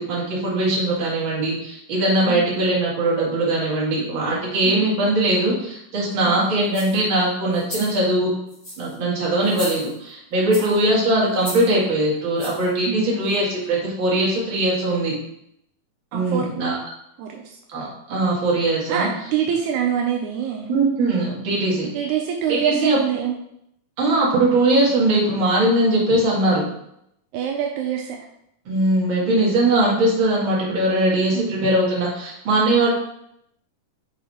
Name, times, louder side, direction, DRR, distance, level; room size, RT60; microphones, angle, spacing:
voice 1, 0.0-8.3 8.8-15.1 16.1-16.8 17.7-19.1 20.7-21.9 22.5-23.0 24.0-26.7 28.7-32.9, right 1 dB, 40° right, -5 dB, 2.2 m, -20 dB
voice 2, 6.3-6.6 7.8-7.9 10.6-10.9 12.9-13.3 16.1-16.5 17.2-17.6 18.9-20.7 21.9-23.4 27.3-28.2 31.3-31.5, right 8 dB, 85° right, 2 dB, 1.7 m, -25 dB
sound 1, 6.7-7.0 7.5-8.0 8.5-9.0 9.4-10.1 10.5-10.8 11.4-11.7 12.4-12.7 13.3-13.4, left 1 dB, 20° left, 2.0 m, -35 dB
6.4 x 4.6 x 4.3 m, 0.77 s
omnidirectional pair, 4.1 m